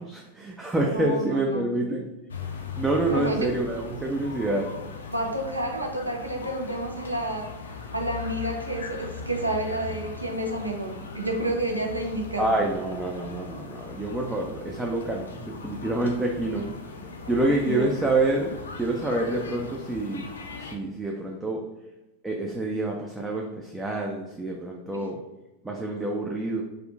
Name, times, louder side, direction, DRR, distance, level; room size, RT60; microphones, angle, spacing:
voice 1, 0.0-2.1 2.7-4.7 12.4-16.9 17.3-20.3 20.5-21.6 22.2-25.2 25.6-26.6, right 2 dB, 10° right, 0 dB, 0.3 m, -27 dB
voice 2, 0.8-1.7 3.1-3.5 5.1-7.5 7.9-12.5 17.2-17.9 24.9-25.0, right 1 dB, 85° right, 2 dB, 0.5 m, -30 dB
sound 1, 2.3-20.8, left 4 dB, 70° left, 0.3 m, -39 dB
3.6 x 2.2 x 2.3 m, 1.0 s
figure-of-eight pair, 90°, 0 cm